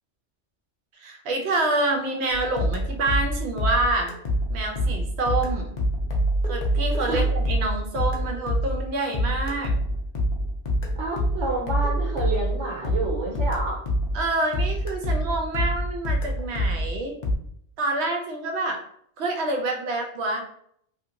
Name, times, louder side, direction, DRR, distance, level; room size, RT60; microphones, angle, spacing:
voice 1, 1.0-4.1 4.5-5.7 6.4-9.7 14.1-17.2 17.8-18.8 19.2-20.4, right 2 dB, 70° right, 3 dB, 0.9 m, -27 dB
sound 1, 2.3-14.3 14.5-17.3, equal, 45° left, 0.6 m, -26 dB
voice 2, 11.0-13.8, right 3 dB, 90° right, -2 dB, 1.0 m, -29 dB
2.8 x 2.8 x 2.5 m, 0.67 s
omnidirectional pair, 1.2 m